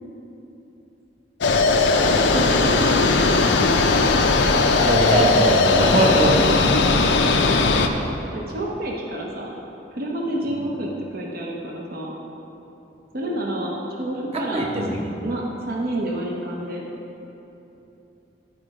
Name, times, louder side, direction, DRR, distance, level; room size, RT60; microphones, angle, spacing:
sound 1, 1.4-7.9, left 3 dB, 90° left, 0.6 m, -18 dB
voice 1, 2.3-3.8 6.3-6.7 8.3-9.5 9.9-12.1 13.1-14.7 15.2-16.8, right 1 dB, 55° right, -2 dB, 0.9 m, -29 dB
voice 2, 4.7-6.3 14.5-15.1, right 1 dB, 35° right, -1 dB, 1.1 m, -21 dB
11.0 x 5.1 x 4.9 m, 3.0 s
head